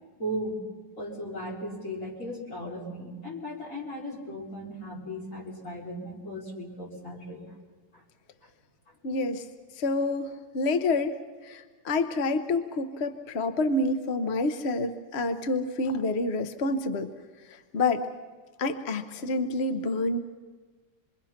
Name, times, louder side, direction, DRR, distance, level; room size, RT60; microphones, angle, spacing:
voice 1, 0.2-0.6 1.0-7.4, equal, 35° left, -3 dB, 4.3 m, -36 dB
voice 2, 9.0-9.5 9.8-11.2 11.4-17.1 17.5-18.1 18.6-20.2, left 2 dB, 55° left, 9 dB, 0.7 m, -28 dB
27.5 x 22.0 x 5.8 m, 1.4 s
omnidirectional pair, 2.3 m